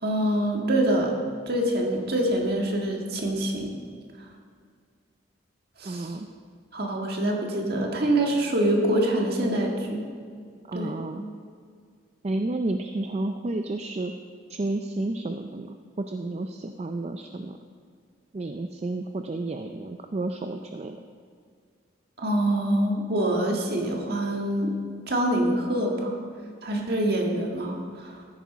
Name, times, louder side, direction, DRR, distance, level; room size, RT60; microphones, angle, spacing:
voice 1, 0.0-1.2 1.5-3.7 5.8-6.1 6.7-10.0 10.7-10.9 22.2-24.7 25.1-26.2 26.6-28.2, right 1 dB, 50° right, 0 dB, 1.8 m, -25 dB
voice 2, 5.8-6.3 10.7-11.2 12.2-14.1 14.5-17.6 18.3-21.0, right 2 dB, 30° right, 6 dB, 0.4 m, -31 dB
14.0 x 10.0 x 4.2 m, 2.1 s
head